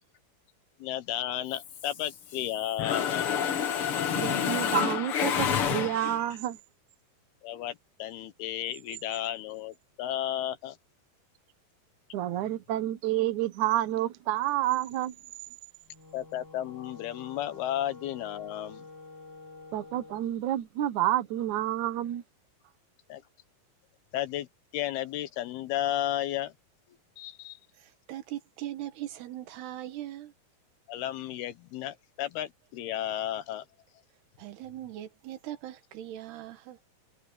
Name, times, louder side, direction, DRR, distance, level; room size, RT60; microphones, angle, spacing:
voice 1, 0.8-3.3 7.4-10.8 16.1-18.9 23.1-23.2 24.1-24.5 24.7-26.5 27.2-27.6 30.9-33.6, left 12 dB, 80° left, 3.0 m, -33 dB
Mechanisms, 1.6-2.5 2.8-6.3, left 8 dB, 55° left, 1.7 m, -29 dB
voice 2, 4.2-6.6 12.1-15.1 19.7-22.2, right 13 dB, 65° right, 2.1 m, -29 dB
Wind instrument woodwind instrument, 15.8-20.3, left 3 dB, 5° right, 4.0 m, -49 dB
voice 3, 27.8-30.3 34.4-36.8, right 13 dB, 90° right, 3.7 m, -40 dB
omnidirectional pair, 4.6 m